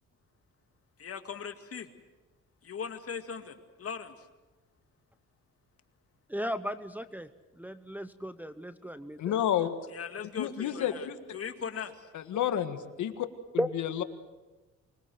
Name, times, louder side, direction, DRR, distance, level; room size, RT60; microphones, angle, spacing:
voice 1, 1.0-1.9 2.6-4.3 9.9-12.1, left 7 dB, 50° left, 7 dB, 2.2 m, -39 dB
voice 2, 6.3-7.3 7.6-9.3 13.6-13.7, equal, 5° right, 10 dB, 0.9 m, -35 dB
voice 3, 9.2-9.8 10.4-11.2 12.1-13.3 13.7-14.0, left 10 dB, 75° left, 9 dB, 1.8 m, -30 dB
24.5 x 21.0 x 7.9 m, 1.2 s
cardioid pair, 90°, 30 cm